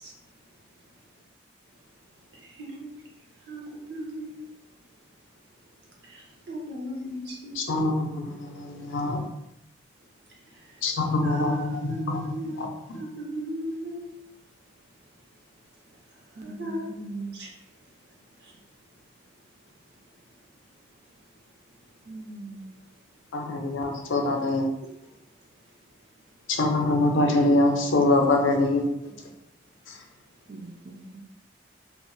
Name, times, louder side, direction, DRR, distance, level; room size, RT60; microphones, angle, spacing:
voice 1, 2.6-2.9 3.5-4.3 6.1-6.2 6.5-7.6 11.2-12.6 12.9-14.0 16.4-16.8 17.3-17.5, right 1 dB, 60° right, -3 dB, 0.8 m, -35 dB
voice 2, 7.5-9.3 10.8-13.0 23.3-24.6 26.5-28.9, left 2 dB, 90° left, 3 dB, 0.5 m, -24 dB
voice 3, 16.4-17.3 22.1-22.6 30.5-31.2, right 2 dB, 40° right, 3 dB, 0.3 m, -39 dB
2.3 x 2.0 x 3.7 m, 0.85 s
head